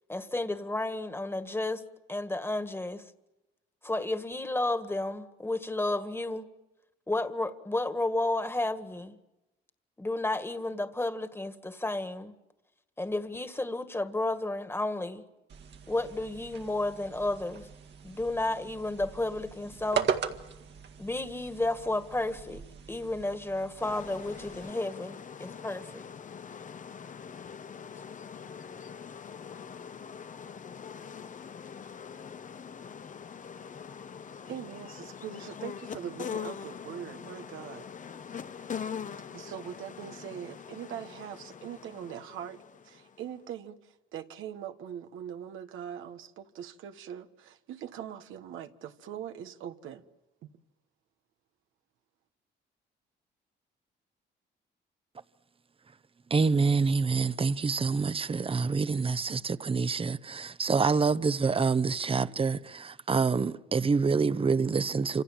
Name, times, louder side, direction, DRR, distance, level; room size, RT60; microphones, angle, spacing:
voice 1, 0.1-1.8 2.1-3.0 3.8-6.5 7.1-9.2 10.0-12.3 13.0-15.2 15.9-17.7 18.0-20.1 21.0-22.6 22.9-26.0, left 2 dB, 10° left, 1.9 m, -32 dB
sound 1, 15.5-24.7, right 7 dB, 60° right, 2.0 m, -39 dB
sound 2, 23.8-43.3, left 7 dB, 40° left, 1.0 m, -43 dB
voice 2, 34.4-37.9 39.3-50.0 50.4-50.6, right 9 dB, 85° right, 1.4 m, -42 dB
voice 3, 56.3-65.2, right 4 dB, 30° right, 0.9 m, -27 dB
28.0 x 27.0 x 7.4 m
cardioid pair, 90°, 20 cm